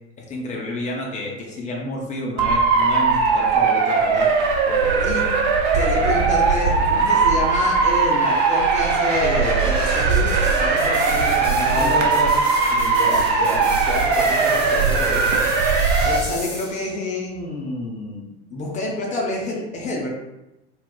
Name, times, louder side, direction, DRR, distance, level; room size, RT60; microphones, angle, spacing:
voice 1, 0.2-4.3 5.0-5.2 5.7-12.4 16.0-20.1, left 2 dB, 20° left, -2 dB, 0.5 m, -28 dB
Motor vehicle (road) / Siren, 2.4-16.2, right 4 dB, 45° right, 0.5 m, -19 dB
voice 2, 4.6-5.0 11.5-12.1 12.7-15.4, equal, 70° right, -3 dB, 1.1 m, -30 dB
sound 1, 5.9-17.0, left 1 dB, 90° left, 0.8 m, -35 dB
3.9 x 2.0 x 2.2 m, 0.92 s
figure-of-eight pair, 75°, 36 cm